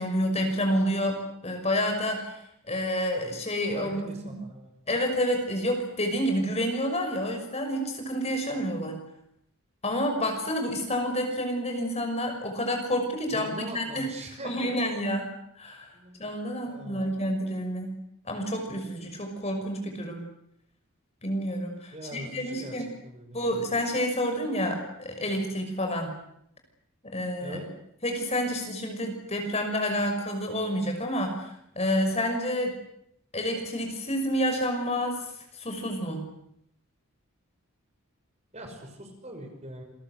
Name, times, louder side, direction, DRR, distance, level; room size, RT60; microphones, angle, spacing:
voice 1, 0.0-2.4 2.7-4.4 4.9-8.9 9.8-14.1 14.4-15.3 15.6-15.9 16.2-18.0 18.3-20.2 21.2-22.9 23.3-26.1 27.0-27.6 28.0-32.7 33.3-35.2 35.5-36.2, equal, 30° left, 4 dB, 6.0 m, -29 dB
voice 2, 3.7-4.7 13.3-14.7 15.9-16.3 16.6-17.1 21.9-22.8 23.0-23.5 27.4-27.6 38.5-39.8, right 1 dB, 30° right, 4 dB, 5.9 m, -41 dB
28.5 x 22.0 x 8.1 m, 0.74 s
head